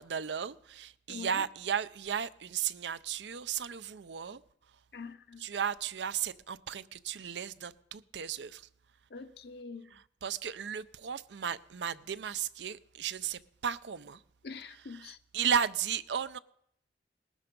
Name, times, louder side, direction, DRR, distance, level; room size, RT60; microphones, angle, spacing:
voice 1, 0.0-4.4 5.4-8.7 10.2-14.2 14.9-16.4, right 8 dB, 85° right, 0.5 m, -35 dB
voice 2, 1.1-1.4 4.9-5.4 9.1-10.0 14.4-15.2, left 4 dB, 65° left, 0.7 m, -44 dB
19.5 x 12.5 x 5.3 m
head